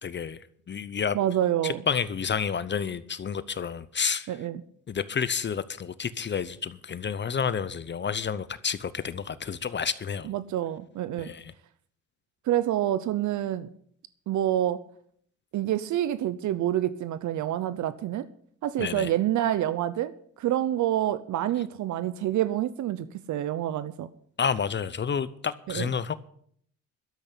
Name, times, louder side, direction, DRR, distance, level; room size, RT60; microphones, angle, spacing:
voice 1, 0.0-1.2 1.6-4.3 4.9-10.3 11.2-11.5 18.8-19.1 24.4-26.2, left 6 dB, 35° left, 0.7 m, -30 dB
voice 2, 1.1-1.8 4.3-4.6 10.2-11.3 12.5-13.7 14.3-14.8 15.5-18.3 18.6-24.1 25.7-25.9, right 12 dB, 75° right, 0.8 m, -27 dB
12.5 x 8.0 x 8.5 m
cardioid pair, 90°, 30 cm